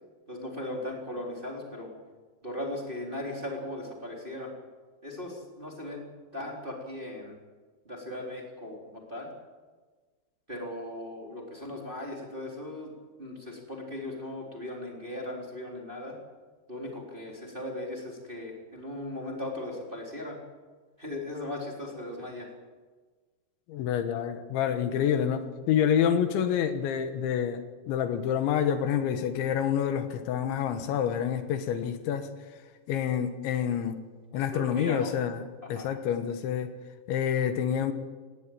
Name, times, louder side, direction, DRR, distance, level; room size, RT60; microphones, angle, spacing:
voice 1, 0.3-1.9 2.4-4.5 5.0-6.1 6.3-7.4 7.8-9.3 10.5-12.9 13.2-16.2 16.7-20.4 21.0-22.5 34.3-35.1 35.6-35.9, left 1 dB, 15° right, 0 dB, 3.1 m, -38 dB
voice 2, 23.7-32.3 32.9-34.0 34.3-36.7 37.1-37.9, left 8 dB, 80° left, 9 dB, 3.6 m, -28 dB
18.5 x 18.0 x 9.1 m, 1.4 s
omnidirectional pair, 5.3 m